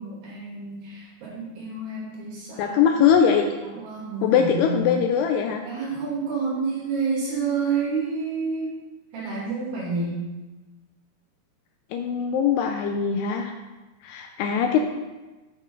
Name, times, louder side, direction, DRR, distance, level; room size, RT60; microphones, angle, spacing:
voice 1, 0.0-2.9 3.6-5.0 5.6-8.8 9.1-10.2, right 4 dB, 65° right, -4 dB, 2.8 m, -29 dB
voice 2, 2.6-3.4 4.2-5.6 11.9-13.5 14.0-14.8, left 7 dB, 85° left, 4 dB, 2.4 m, -21 dB
7.8 x 6.1 x 3.7 m, 1.2 s
omnidirectional pair, 5.1 m